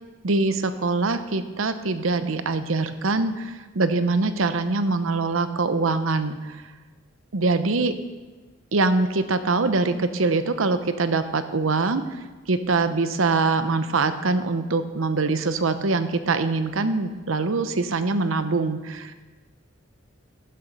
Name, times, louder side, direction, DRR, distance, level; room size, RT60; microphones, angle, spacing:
voice 1, 0.2-6.4 7.3-7.9 8.7-12.0 12.5-19.1, right 3 dB, 90° right, 11 dB, 0.8 m, -23 dB
12.0 x 10.0 x 5.3 m, 1.3 s
head